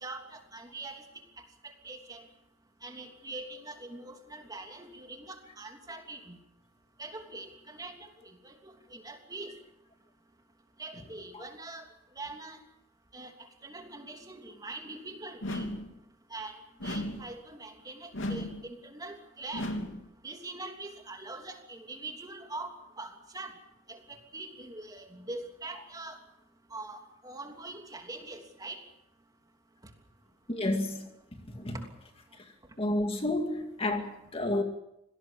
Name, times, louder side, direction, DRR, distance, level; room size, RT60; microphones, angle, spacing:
voice 1, 0.0-1.0 1.8-2.3 2.8-6.4 7.0-8.0 8.2-9.5 10.8-11.8 12.2-12.6 13.1-13.3 13.6-15.7 16.3-19.7 20.2-23.5 23.9-26.2 26.7-28.8, right 2 dB, 20° right, 3 dB, 3.0 m, -43 dB
sound 1, 15.4-16.0 16.8-17.4 18.1-18.7 19.5-20.1, left 1 dB, 80° left, 3.0 m, -35 dB
voice 2, 30.5-31.1 31.5-31.7 32.8-34.6, left 1 dB, 30° left, 4 dB, 2.2 m, -30 dB
26.0 x 19.0 x 7.1 m, 0.81 s
head